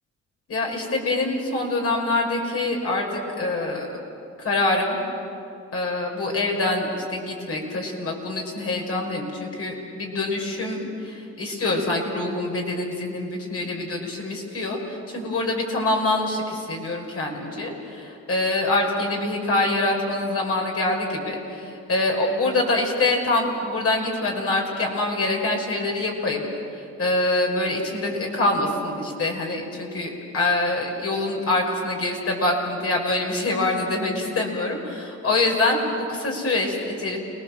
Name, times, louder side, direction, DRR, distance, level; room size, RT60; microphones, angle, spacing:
voice 1, 0.5-3.9 4.4-5.0 5.7-26.5 26.7-37.2, left 2 dB, 50° left, 0 dB, 6.0 m, -25 dB
29.5 x 20.5 x 7.5 m, 2.6 s
cardioid pair, 90°, 30 cm